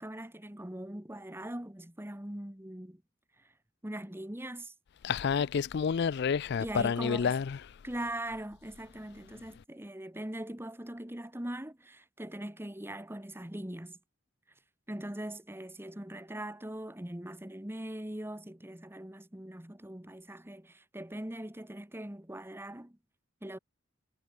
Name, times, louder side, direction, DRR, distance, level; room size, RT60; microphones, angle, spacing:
voice 1, 0.0-3.0 3.8-4.7 6.6-7.3 7.8-14.0 14.9-23.0 23.4-23.6, right 1 dB, 10° right, 1.5 m, -41 dB
voice 2, 5.0-7.6, left 6 dB, 60° left, 0.4 m, -29 dB
head